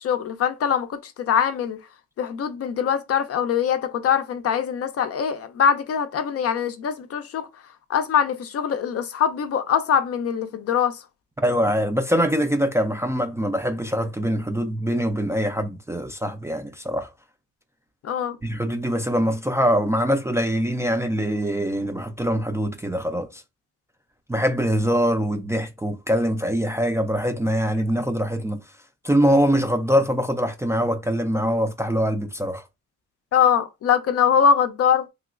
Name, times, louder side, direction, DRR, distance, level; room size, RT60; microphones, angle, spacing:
voice 1, 0.0-1.8 2.2-7.5 7.9-11.0 18.0-18.4 33.3-35.0, left 7 dB, 50° left, 0.5 m, -22 dB
voice 2, 11.4-17.1 18.4-23.4 24.3-28.6 29.0-32.6, equal, 10° right, 0.3 m, -23 dB
3.1 x 2.9 x 2.4 m
cardioid pair, 90°, 30 cm